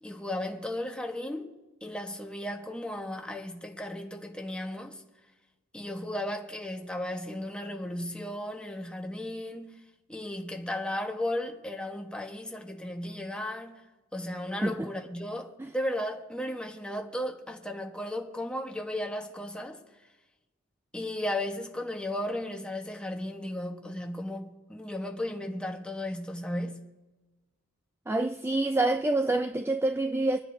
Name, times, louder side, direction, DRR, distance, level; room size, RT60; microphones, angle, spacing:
voice 1, 0.0-1.5 1.8-5.0 5.7-9.7 10.1-13.8 14.1-19.8 20.9-26.8, left 1 dB, 5° left, 1.2 m, -35 dB
voice 2, 28.1-30.4, right 2 dB, 10° right, 0.4 m, -27 dB
26.5 x 9.8 x 2.7 m
head